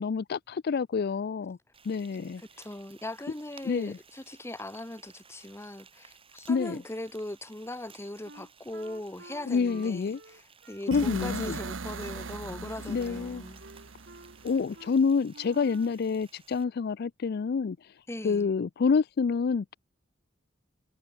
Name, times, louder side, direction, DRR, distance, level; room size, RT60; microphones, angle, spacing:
voice 1, 0.0-1.6 1.8-2.4 3.6-4.0 6.5-6.8 9.5-10.2 10.9-11.6 12.9-13.4 14.4-17.9 18.2-19.7, left 5 dB, 55° left, 0.4 m, -28 dB
Frying (food), 1.7-16.6, right 6 dB, 30° right, 4.8 m, -57 dB
voice 2, 2.6-13.6 18.1-18.5, left 1 dB, 15° left, 1.3 m, -40 dB
Wind instrument woodwind instrument, 8.2-11.7 12.1-12.4 12.7-13.3 13.6-14.4 14.7-15.0 15.3-16.0, right 2 dB, 60° right, 7.4 m, -51 dB
sound 1, 10.9-14.8, right 3 dB, 80° right, 1.1 m, -39 dB
head